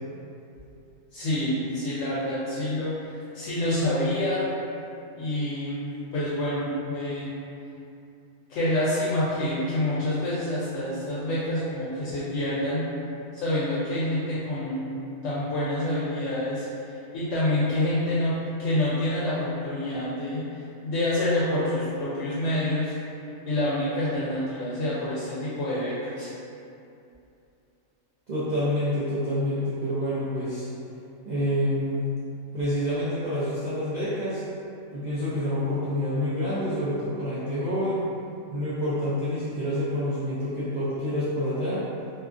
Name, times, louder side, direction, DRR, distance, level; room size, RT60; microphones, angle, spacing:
voice 1, 1.1-4.5 5.1-7.3 8.5-12.9 13.3-14.9 15.2-18.3 18.6-23.0 23.5-26.3, left 1 dB, 70° left, -9 dB, 0.8 m, -27 dB
voice 2, 28.3-30.7 31.2-32.0 32.5-34.4 34.9-38.0 38.5-41.8, equal, 85° right, -12 dB, 0.3 m, -27 dB
2.6 x 2.3 x 2.4 m, 2.6 s
omnidirectional pair, 1.4 m